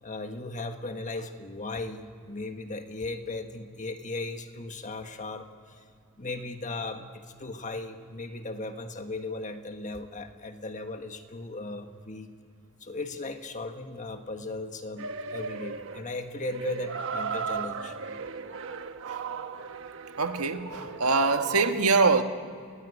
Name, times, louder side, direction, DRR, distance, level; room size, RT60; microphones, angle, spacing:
voice 1, 0.0-5.8 6.2-12.3 12.8-18.0, left 2 dB, 35° left, 6 dB, 1.5 m, -37 dB
sound 1, 15.0-21.7, right 5 dB, 65° right, 1.1 m, -36 dB
voice 2, 20.2-22.2, right 4 dB, 85° right, 6 dB, 1.5 m, -24 dB
28.0 x 19.0 x 8.4 m, 2.4 s
head